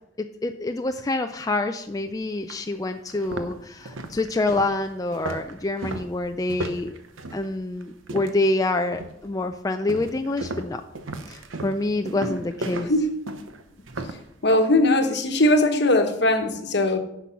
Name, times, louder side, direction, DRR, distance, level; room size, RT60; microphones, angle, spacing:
voice 1, 0.2-6.9 7.3-10.8 11.3-12.9, left 2 dB, 20° left, 6 dB, 0.3 m, -27 dB
sound 1, 1.9-2.0 2.5-2.6 3.1-8.5 8.9-9.3 9.9-14.3, right 2 dB, 85° right, 0.9 m, -35 dB
voice 2, 14.4-17.0, left 1 dB, 55° left, 6 dB, 1.1 m, -20 dB
10.0 x 6.1 x 5.7 m, 0.82 s
head